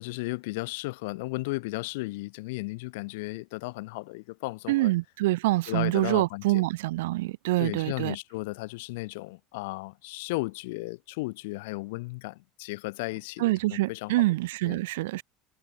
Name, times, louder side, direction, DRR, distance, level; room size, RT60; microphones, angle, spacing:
voice 1, 0.0-4.9 5.7-6.6 7.6-13.5 13.9-14.1 14.6-14.8, left 23 dB, 80° left, 0.7 m, -35 dB
voice 2, 4.7-8.2 13.4-15.2, right 19 dB, 85° right, 0.5 m, -26 dB
supercardioid pair, 110°, 0 cm